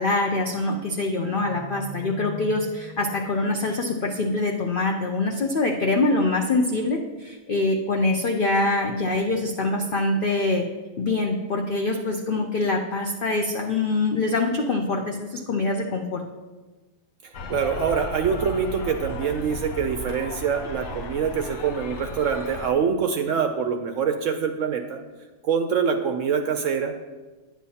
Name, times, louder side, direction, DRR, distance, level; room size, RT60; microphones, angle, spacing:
voice 1, 0.0-10.7 11.0-16.2, left 2 dB, 80° left, 2 dB, 0.4 m, -24 dB
sound 1, 1.3-4.7, left 2 dB, 5° right, 0.6 m, -41 dB
voice 2, 17.2-25.0 25.4-26.9, right 6 dB, 70° right, 6 dB, 0.8 m, -25 dB
sound 2, 17.3-22.7, left 1 dB, 60° left, 0.8 m, -35 dB
10.0 x 8.3 x 2.8 m, 1.2 s
omnidirectional pair, 1.7 m